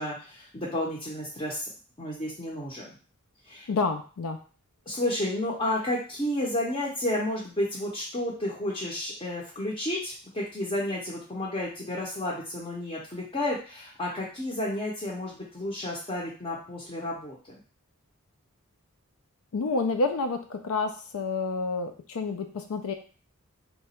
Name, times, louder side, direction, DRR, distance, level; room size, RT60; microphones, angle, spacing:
voice 1, 0.0-1.7 2.0-3.0 3.5-3.7 4.9-17.4, left 1 dB, 25° left, -5 dB, 0.7 m, -31 dB
voice 2, 3.7-4.4 19.5-22.9, left 3 dB, 75° left, 5 dB, 0.4 m, -29 dB
2.9 x 2.3 x 4.2 m, 0.38 s
head